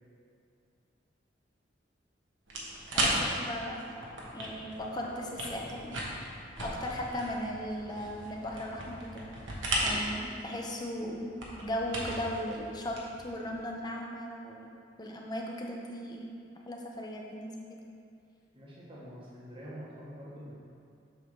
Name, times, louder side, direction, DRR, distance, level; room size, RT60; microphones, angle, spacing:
sound 1, 2.5-13.6, right 1 dB, 85° right, 1.3 m, -36 dB
voice 1, 2.9-4.0 4.3-6.0 6.6-9.3 9.8-13.0 13.2-14.7 15.0-16.3 16.7-17.8, equal, 20° left, -1 dB, 0.7 m, -37 dB
voice 2, 18.5-20.5, equal, 30° right, -8 dB, 1.3 m, -46 dB
7.5 x 3.4 x 5.9 m, 2.4 s
head